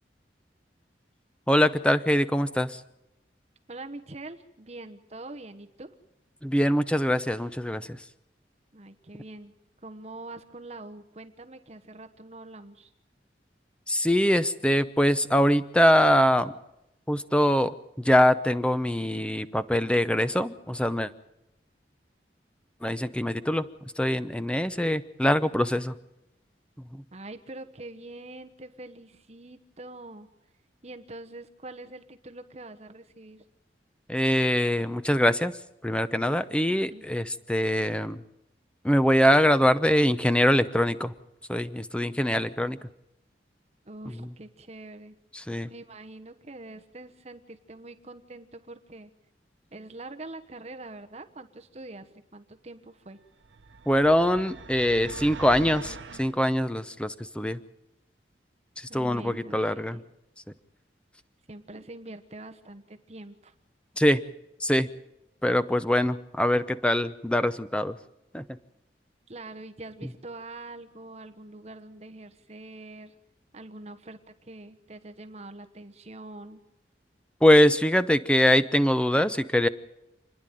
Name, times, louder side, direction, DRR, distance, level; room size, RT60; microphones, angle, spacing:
voice 1, 1.5-2.8 6.4-8.0 13.9-16.5 17.1-21.1 22.8-23.6 24.0-25.9 34.1-35.5 35.8-38.2 38.8-41.1 41.5-42.8 45.3-45.7 53.9-57.6 58.8-60.0 64.0-64.2 64.6-64.9 65.4-68.0 68.3-68.4 77.4-79.7, equal, 5° left, 12 dB, 0.7 m, -23 dB
voice 2, 3.7-5.9 8.7-9.5 9.8-12.9 27.1-30.3 30.8-33.5 36.7-37.0 43.8-45.2 45.7-49.1 49.7-53.2 58.9-60.0 61.5-63.5 69.3-73.1 73.5-76.6, right 2 dB, 35° right, 7 dB, 1.1 m, -44 dB
sound 1, 53.4-56.3, right 4 dB, 90° right, 0.9 m, -42 dB
29.0 x 10.5 x 9.2 m, 0.87 s
head